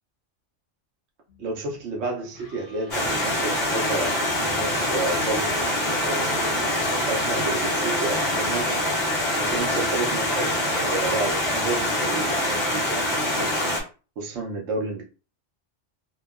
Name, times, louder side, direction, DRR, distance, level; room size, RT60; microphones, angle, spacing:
sound 1, 1.3-9.5, equal, 80° left, 1.2 m, -44 dB
voice 1, 1.4-5.5 6.0-6.7 7.1-8.8 9.3-13.5 14.2-15.0, right 3 dB, 70° right, -1 dB, 0.8 m, -31 dB
Stream, 2.9-13.8, left 1 dB, 60° left, 1.0 m, -24 dB
2.8 x 2.0 x 2.3 m, 0.34 s
omnidirectional pair, 1.2 m